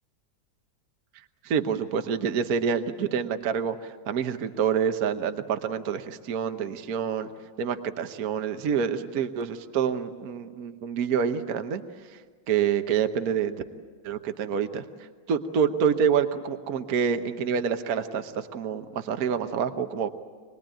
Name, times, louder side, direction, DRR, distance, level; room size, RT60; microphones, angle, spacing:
voice 1, 1.4-7.3 7.6-11.8 12.5-13.6 14.0-20.1, right 7 dB, 55° right, 8 dB, 1.3 m, -27 dB
26.0 x 20.0 x 9.0 m, 1.5 s
omnidirectional pair, 2.2 m